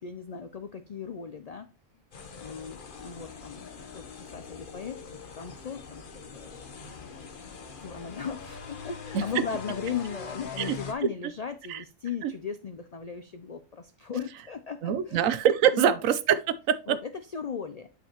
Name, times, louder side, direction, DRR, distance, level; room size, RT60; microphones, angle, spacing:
voice 1, 0.0-1.7 2.3-3.7 3.9-5.0 5.4-6.0 6.3-6.6 7.1-15.3 15.7-15.9 16.9-17.9, left 6 dB, 90° left, 0.3 m, -37 dB
sound 1, 2.1-10.9, left 5 dB, 45° left, 1.0 m, -43 dB
voice 2, 14.8-17.0, right 9 dB, 85° right, 1.1 m, -24 dB
8.9 x 5.1 x 2.9 m
omnidirectional pair, 1.4 m